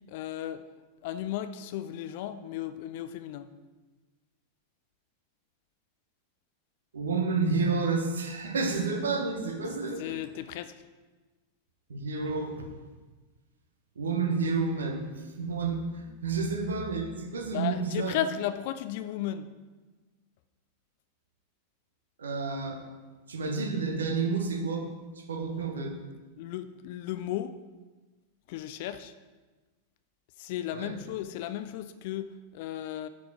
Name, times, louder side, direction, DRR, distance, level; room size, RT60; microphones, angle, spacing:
voice 1, 0.1-0.6 1.0-3.5 9.7-10.8 17.5-19.5 26.4-27.6 28.5-29.1 30.4-33.1, left 11 dB, 50° left, 12 dB, 0.4 m, -35 dB
voice 2, 6.9-10.0 11.9-12.5 14.0-18.1 22.2-22.8 23.3-24.8 25.3-25.9 30.7-30.9, right 4 dB, 70° right, 4 dB, 1.1 m, -30 dB
9.2 x 5.1 x 4.9 m, 1.3 s
figure-of-eight pair, 90°, 0 cm